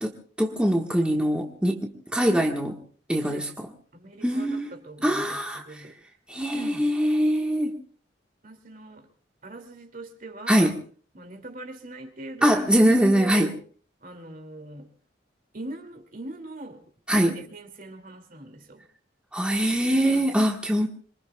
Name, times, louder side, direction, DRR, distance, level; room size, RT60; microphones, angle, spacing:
voice 1, 0.0-2.8 3.1-3.5 4.2-4.7 5.0-5.8 6.3-7.8 10.5-10.7 12.4-13.5 17.1-17.4 19.3-20.9, equal, 5° right, 0 dB, 1.3 m, -23 dB
voice 2, 3.9-6.0 6.5-6.8 8.4-9.1 9.4-10.7 11.1-12.9 13.1-13.6 14.0-14.9 15.5-16.8 17.1-18.8 20.0-20.2, right 2 dB, 45° right, 6 dB, 2.4 m, -41 dB
26.5 x 24.0 x 2.3 m, 0.43 s
head